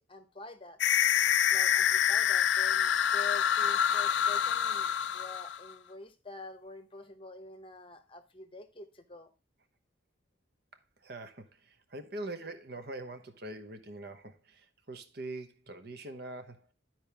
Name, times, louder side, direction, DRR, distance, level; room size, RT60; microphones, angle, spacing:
voice 1, 0.1-0.8 1.5-9.3, left 3 dB, 25° left, 0.9 m, -47 dB
sound 1, 0.8-5.7, left 9 dB, 60° left, 0.3 m, -27 dB
voice 2, 11.0-16.7, right 2 dB, 50° right, 1.0 m, -43 dB
12.0 x 4.5 x 3.4 m
head